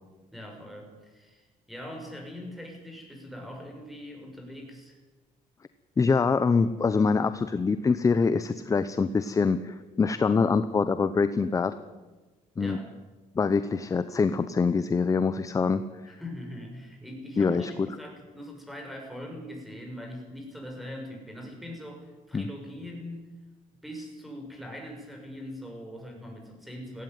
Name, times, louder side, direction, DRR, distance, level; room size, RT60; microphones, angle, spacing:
voice 1, 0.3-5.0 12.6-12.9 16.1-23.3 23.8-27.0, left 1 dB, ahead, 2 dB, 6.3 m, -42 dB
voice 2, 6.0-11.7 12.6-12.8 13.4-16.1 17.4-17.9 22.3-22.5, left 4 dB, 25° left, 12 dB, 0.8 m, -25 dB
17.0 x 16.5 x 9.5 m, 1.2 s
cardioid pair, 125°, 14 cm